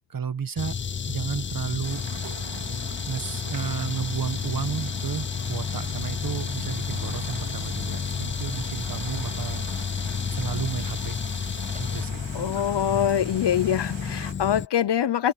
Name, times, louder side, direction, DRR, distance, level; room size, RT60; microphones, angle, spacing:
voice 1, 0.1-0.8 1.1-2.1 3.1-9.7 9.9-11.2 11.8-12.6, right 7 dB, 50° right, 1.6 m, -32 dB
sound 1, 0.6-14.7, left 6 dB, 30° left, 0.4 m, -31 dB
sound 2, 1.8-14.3, right 7 dB, 90° right, 4.4 m, -43 dB
sound 3, 5.6-5.9 6.2-6.5 6.8-8.5 9.1-10.1 10.7-12.1 12.3-12.6 13.1-13.3 13.8-14.1 14.4-14.5, right 2 dB, 20° right, 7.8 m, -58 dB
voice 2, 12.3-15.3, left 10 dB, 70° left, 0.9 m, -24 dB
open air
wide cardioid pair, 175°, 43 cm